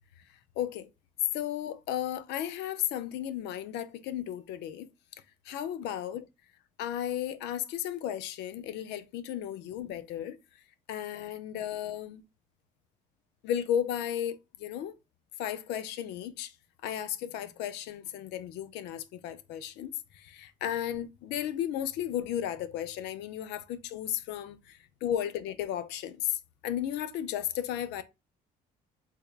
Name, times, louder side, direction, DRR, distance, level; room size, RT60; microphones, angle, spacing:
voice 1, 0.6-0.9 1.3-4.9 5.5-6.3 6.8-10.4 10.9-12.2 13.4-14.9 15.4-16.5 16.8-28.0, left 10 dB, 85° left, 0.5 m, -34 dB
3.5 x 3.2 x 2.3 m
cardioid pair, 110°, 17 cm